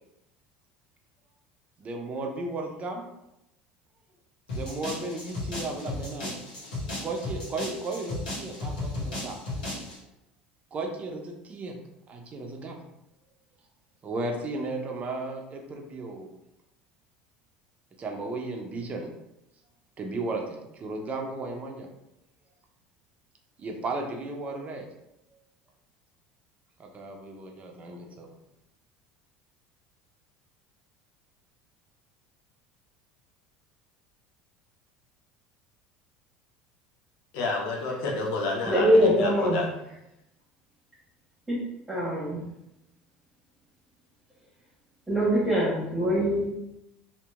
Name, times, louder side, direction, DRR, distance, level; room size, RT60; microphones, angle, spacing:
voice 1, 1.8-3.0 4.5-6.4 7.0-9.4 10.7-11.7 12.1-12.8 14.0-16.3 18.0-19.1 20.0-21.9 23.6-24.9 25.3-25.4 26.8-28.3, right 2 dB, 35° right, 2 dB, 0.6 m, -35 dB
sound 1, 4.5-10.0, left 2 dB, 85° left, 1.1 m, -35 dB
voice 2, 37.3-39.7, left 3 dB, 70° left, -2 dB, 0.6 m, -29 dB
voice 3, 38.7-39.6 41.5-41.6 41.9-42.4 45.1-46.5, equal, 10° right, -8 dB, 1.2 m, -23 dB
2.8 x 2.5 x 2.4 m, 0.87 s
hypercardioid pair, 80°, 4 cm